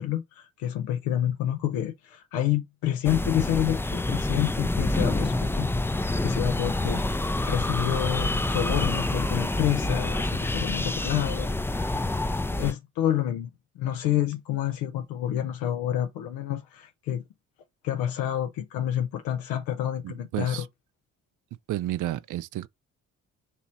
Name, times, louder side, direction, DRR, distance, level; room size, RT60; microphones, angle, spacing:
voice 1, 0.0-5.7 6.2-12.0 12.6-13.5 13.8-17.2 17.8-20.6, left 11 dB, 80° left, 0.6 m, -28 dB
sound 1, 3.0-12.7, left 2 dB, 5° left, 0.4 m, -27 dB
voice 2, 20.0-20.7 21.7-22.7, right 14 dB, 60° right, 0.5 m, -31 dB
3.0 x 2.9 x 3.9 m
supercardioid pair, 55°, 35 cm